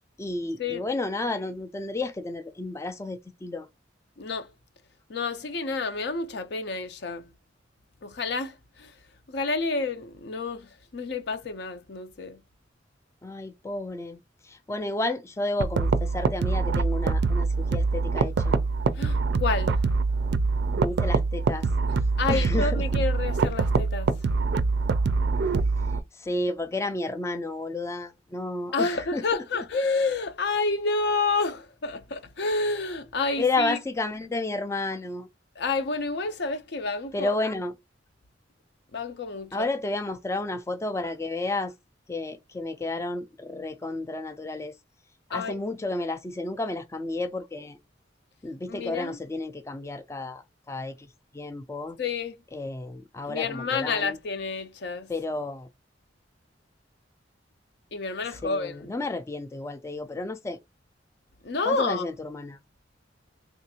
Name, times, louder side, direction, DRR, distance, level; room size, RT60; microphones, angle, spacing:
voice 1, 0.2-3.7 13.2-18.5 20.8-21.7 22.3-23.0 25.4-25.5 26.1-29.4 33.4-35.3 37.1-37.7 39.5-41.7 42.1-44.7 45.3-47.8 48.4-51.1 51.3-52.0 52.5-54.2 55.1-55.7 58.3-60.6 61.7-62.6, left 2 dB, 15° left, 0.3 m, -32 dB
voice 2, 4.2-4.5 5.1-7.3 8.0-9.0 9.3-12.4 18.9-19.8 22.2-24.1 28.7-33.8 35.6-37.4 38.9-39.7 45.3-45.6 48.7-49.2 52.0-52.4 53.3-55.1 57.9-58.9 61.4-62.1, left 3 dB, 65° left, 0.6 m, -29 dB
sound 1, 15.6-26.0, right 4 dB, 60° right, 0.4 m, -24 dB
3.6 x 2.5 x 2.7 m
head